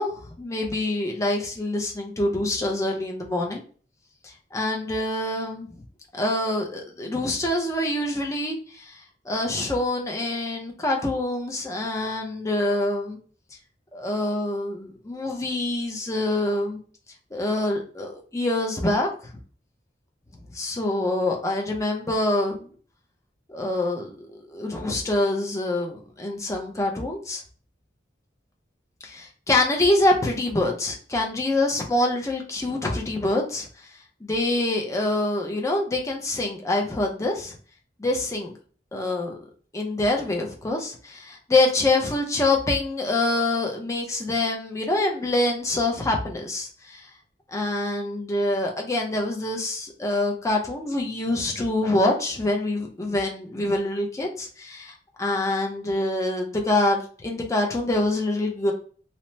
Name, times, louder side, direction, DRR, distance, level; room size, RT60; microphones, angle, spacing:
voice 1, 0.0-3.6 4.2-5.8 6.1-9.0 9.3-13.2 13.9-16.8 17.3-19.1 20.5-22.7 23.5-27.4 29.0-33.7 34.2-37.6 38.0-38.5 38.9-39.4 39.7-47.1 47.5-54.9 55.2-58.7, left 2 dB, 20° left, 0 dB, 0.5 m, -25 dB
2.8 x 2.0 x 3.1 m, 0.42 s
head